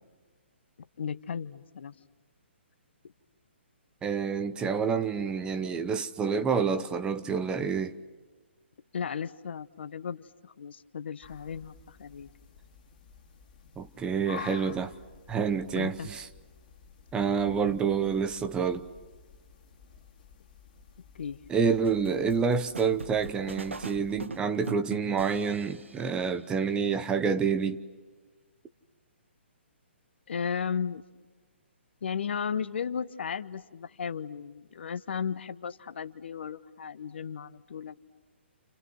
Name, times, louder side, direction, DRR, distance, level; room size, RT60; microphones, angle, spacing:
voice 1, 1.0-1.9 8.9-12.3 15.7-16.1 21.1-21.4 30.3-31.0 32.0-37.9, left 7 dB, 65° left, 1.1 m, -35 dB
voice 2, 4.0-8.0 13.8-14.9 15.3-16.3 17.1-18.9 21.5-27.8, right 6 dB, 15° right, 0.9 m, -28 dB
sound 1, 11.2-24.3, left 7 dB, 40° left, 2.6 m, -51 dB
sound 2, 21.8-26.2, right 4 dB, 85° right, 1.0 m, -41 dB
30.0 x 29.5 x 6.3 m
figure-of-eight pair, 135°, 7 cm